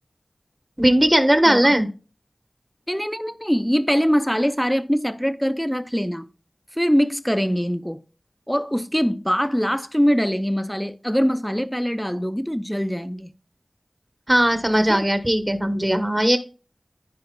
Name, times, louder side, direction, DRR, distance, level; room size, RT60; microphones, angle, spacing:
voice 1, 0.8-1.9 14.3-16.4, right 1 dB, 20° right, 1.1 m, -18 dB
voice 2, 2.9-6.3 6.8-8.0 8.5-13.3 14.8-15.0, equal, 5° left, 0.7 m, -23 dB
14.5 x 5.1 x 2.3 m
wide cardioid pair, 45°, 0 cm